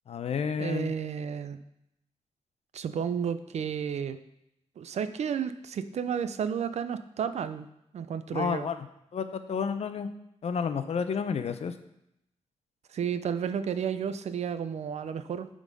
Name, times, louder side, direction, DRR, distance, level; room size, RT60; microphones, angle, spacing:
voice 1, 0.1-0.9 8.3-8.8 9.1-10.1 10.4-11.7, left 6 dB, 70° left, 10 dB, 0.6 m, -30 dB
voice 2, 0.6-1.6 2.7-4.2 4.8-7.7 7.9-8.7 12.9-15.5, right 7 dB, 75° right, 11 dB, 0.5 m, -32 dB
8.2 x 3.8 x 5.3 m, 0.80 s
wide cardioid pair, 125°, 11 cm